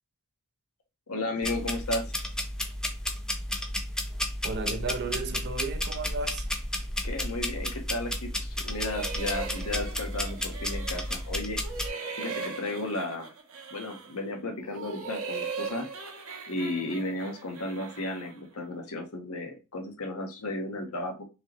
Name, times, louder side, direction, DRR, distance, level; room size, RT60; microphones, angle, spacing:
voice 1, 1.1-2.0 7.0-11.6 12.2-13.3 13.7-15.9 16.5-21.2, left 2 dB, 80° left, 1.2 m, -34 dB
sound 1, 1.4-11.9, left 1 dB, 5° left, 0.6 m, -32 dB
voice 2, 4.4-6.5, right 4 dB, 50° right, 0.6 m, -34 dB
sound 2, 8.6-11.3 11.6-14.2 14.6-18.4, right 5 dB, 75° right, 1.1 m, -39 dB
4.5 x 3.1 x 3.0 m
head